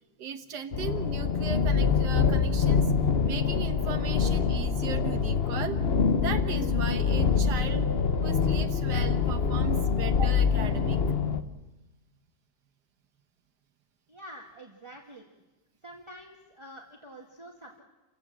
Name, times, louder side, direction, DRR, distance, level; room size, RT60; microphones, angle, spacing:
voice 1, 0.2-2.9 3.2-5.8 6.2-7.9 8.2-11.0, right 6 dB, 80° right, 8 dB, 1.9 m, -37 dB
sound 1, 0.7-11.4, left 6 dB, 45° left, 1.0 m, -25 dB
voice 2, 14.1-15.3 15.8-17.8, right 1 dB, 15° right, -1 dB, 2.0 m, -47 dB
29.5 x 16.5 x 7.6 m, 1.1 s
omnidirectional pair, 1.8 m